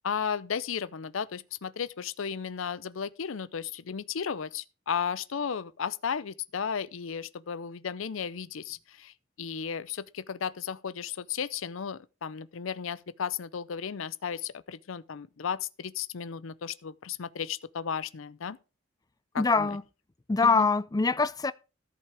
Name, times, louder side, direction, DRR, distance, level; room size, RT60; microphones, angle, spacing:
voice 1, 0.0-18.6 19.3-19.7 20.4-20.7, left 7 dB, 65° left, 0.5 m, -34 dB
voice 2, 19.4-19.8 20.3-21.5, left 4 dB, 20° left, 0.4 m, -24 dB
14.0 x 5.7 x 4.8 m
head